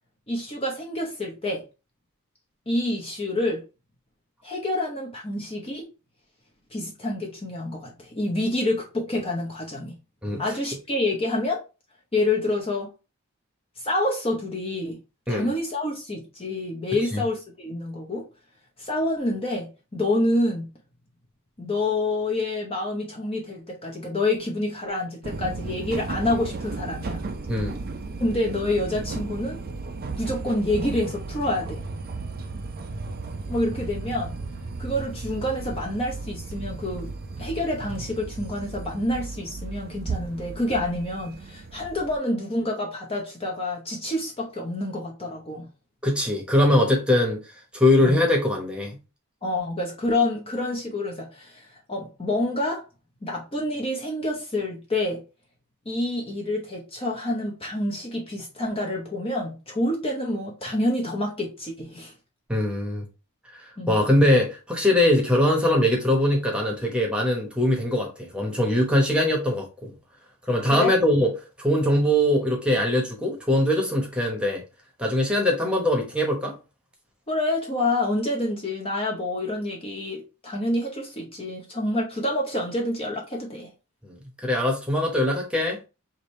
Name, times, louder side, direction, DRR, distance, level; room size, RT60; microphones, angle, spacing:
voice 1, 0.3-1.6 2.7-3.6 4.4-5.9 6.7-10.0 10.4-11.6 12.1-12.9 13.8-15.0 15.3-18.3 18.8-20.7 21.6-27.2 28.2-29.6 30.2-31.8 33.5-34.4 34.8-37.1 37.4-45.7 48.0-48.2 49.4-52.8 53.2-55.2 55.9-62.1 63.8-64.0 70.7-70.9 77.3-83.7, left 1 dB, 25° left, 0.8 m, -27 dB
sound 1, 25.2-42.2, right 3 dB, 40° right, 0.5 m, -35 dB
voice 2, 46.0-47.4 47.7-49.0 62.5-63.0 63.9-69.9 70.5-71.3 71.6-74.6 75.0-76.5 84.0-85.8, left 1 dB, 5° right, 1.1 m, -22 dB
4.9 x 2.7 x 3.1 m
head